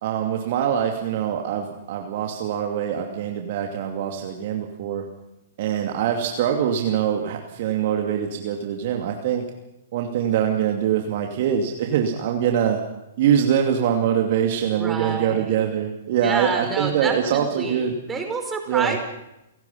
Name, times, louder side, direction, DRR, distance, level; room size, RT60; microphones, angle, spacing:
voice 1, 0.0-5.1 5.6-9.5 9.9-12.8 13.2-17.9 18.7-19.0, right 9 dB, 45° right, 2 dB, 2.6 m, -23 dB
voice 2, 14.8-15.5 16.2-19.0, right 4 dB, 10° right, 3 dB, 4.9 m, -28 dB
29.5 x 17.5 x 5.7 m, 0.89 s
figure-of-eight pair, 110°, 0 cm